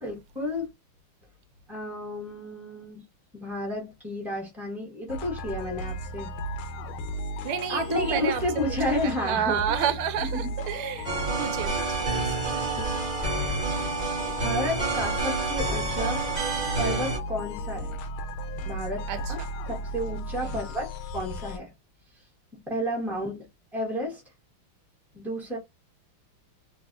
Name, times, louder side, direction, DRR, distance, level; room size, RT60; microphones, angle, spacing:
voice 1, 0.0-0.7 1.7-3.0 3.3-6.3 7.7-9.8 10.3-10.5 12.7-13.1 14.4-16.2 16.8-17.9 18.6-19.4 19.7-21.7 22.5-23.4 23.7-24.2 25.1-25.6, left 1 dB, ahead, 0.9 m, -31 dB
sound 1, 5.1-21.6, equal, 85° left, 1.5 m, -35 dB
voice 2, 7.4-8.4 9.0-11.1 11.4-12.3 19.1-19.5 20.4-20.6, right 8 dB, 85° right, 1.4 m, -30 dB
sound 2, 11.0-17.2, right 3 dB, 30° right, 0.9 m, -29 dB
3.4 x 2.6 x 2.6 m
omnidirectional pair, 2.3 m